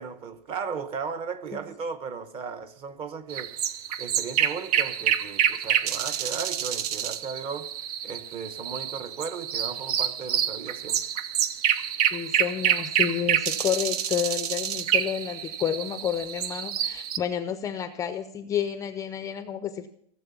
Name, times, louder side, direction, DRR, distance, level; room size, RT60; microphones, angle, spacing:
voice 1, 0.0-3.6 4.0-7.7 8.0-11.0, right 5 dB, 25° right, 1.0 m, -36 dB
sound 1, 3.3-17.2, right 9 dB, 70° right, 0.9 m, -27 dB
voice 2, 12.1-19.9, left 9 dB, 15° left, 0.5 m, -30 dB
17.0 x 7.5 x 7.0 m
supercardioid pair, 165°, 20 cm